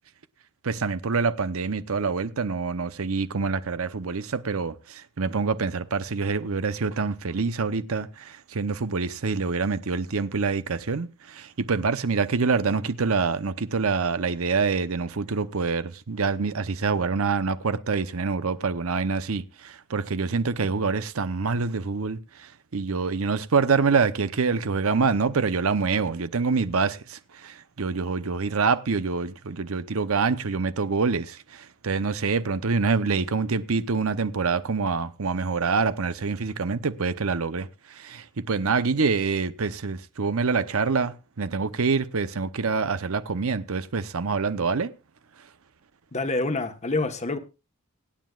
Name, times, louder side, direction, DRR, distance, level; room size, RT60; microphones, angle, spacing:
voice 1, 0.6-44.9, right 4 dB, 75° right, 0.8 m, -26 dB
voice 2, 46.1-47.4, left 2 dB, 30° left, 1.2 m, -27 dB
24.5 x 9.3 x 2.4 m
head